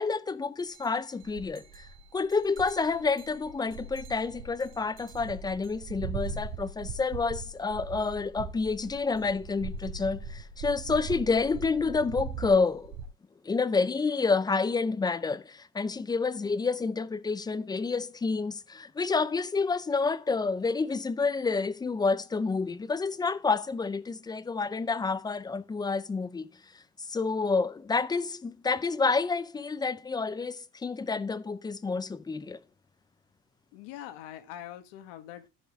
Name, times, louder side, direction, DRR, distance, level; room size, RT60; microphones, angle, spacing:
voice 1, 0.0-1.9 2.1-12.9 13.4-26.5 27.1-32.6, left 4 dB, 10° left, 0.4 m, -29 dB
sound 1, 0.7-0.9 1.2-13.0, right 5 dB, 70° right, 2.0 m, -40 dB
voice 2, 33.7-35.5, left 12 dB, 80° left, 1.7 m, -43 dB
14.0 x 5.2 x 3.5 m
cardioid pair, 130°, 43 cm